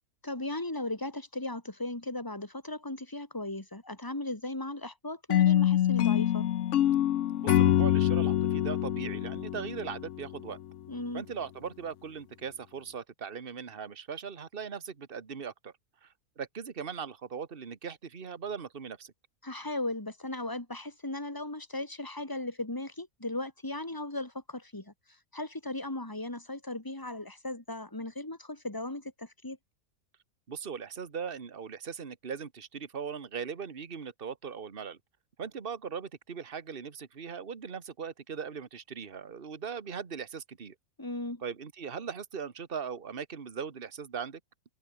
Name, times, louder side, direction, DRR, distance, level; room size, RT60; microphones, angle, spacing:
voice 1, 0.2-6.5 10.9-11.2 19.4-24.9 25.3-29.6 41.0-41.4, left 2 dB, 15° left, 2.9 m, -37 dB
sound 1, 5.3-10.4, left 11 dB, 60° left, 0.9 m, -25 dB
voice 2, 7.4-10.6 11.1-15.7 16.0-19.1 30.5-35.0 35.4-40.7 41.4-44.4, right 6 dB, 40° right, 1.7 m, -39 dB
open air
omnidirectional pair, 1.6 m